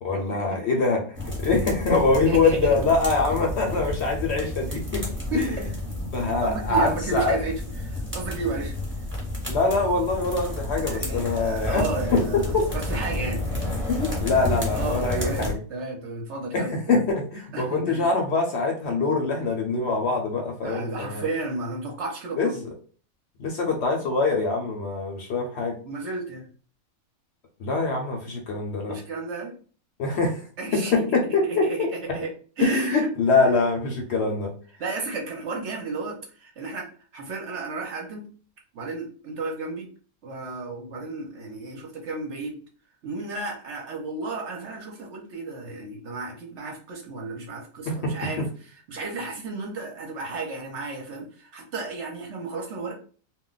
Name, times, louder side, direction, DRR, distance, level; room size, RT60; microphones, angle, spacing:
voice 1, 0.0-5.1 5.3-5.6 6.1-7.4 9.5-11.8 12.1-12.6 13.9-15.6 16.5-21.2 22.4-22.5 23.4-25.8 27.6-29.0 30.0-30.4 30.7-31.9 32.6-34.5 47.9-48.5, left 3 dB, 60° left, 2 dB, 0.8 m, -24 dB
sound 1, 1.1-15.5, left 1 dB, 10° right, 0.9 m, -31 dB
voice 2, 2.3-2.8 5.3-5.5 6.4-8.7 10.8-13.4 14.7-17.0 17.5-18.0 20.6-22.6 25.8-26.5 28.9-29.6 30.6-31.0 31.4-32.3 32.6-33.1 34.8-38.3 38.7-39.9 40.2-42.6 43.0-52.9, right 3 dB, 60° right, 1 dB, 0.9 m, -33 dB
2.3 x 2.2 x 3.8 m, 0.41 s
omnidirectional pair, 1.5 m